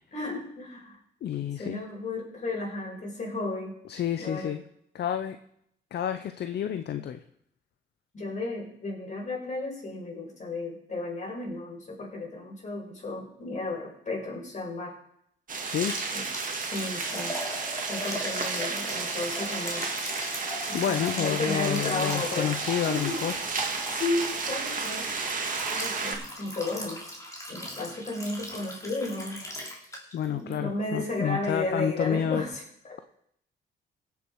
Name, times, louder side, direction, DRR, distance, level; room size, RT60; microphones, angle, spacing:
voice 1, 0.1-1.0 1.6-3.8 4.2-4.5 8.1-15.0 16.1-17.4 17.8-19.9 20.7-22.6 22.9-23.3 23.6-25.1 25.7-27.0 27.5-29.5 30.3-33.0, left 2 dB, 35° left, -2 dB, 5.3 m, -34 dB
voice 2, 1.2-1.8 3.9-4.6 4.9-5.4 5.9-7.2 15.6-16.0 20.7-23.3 30.1-32.5, left 9 dB, 55° left, 9 dB, 0.7 m, -29 dB
sound 1, 15.5-26.2, right 4 dB, 45° right, 2.0 m, -32 dB
Liquid, 15.8-30.2 30.5-30.6 31.1-31.2, equal, 15° left, 2.9 m, -39 dB
17.0 x 7.0 x 4.7 m, 0.72 s
cardioid pair, 90°, 20 cm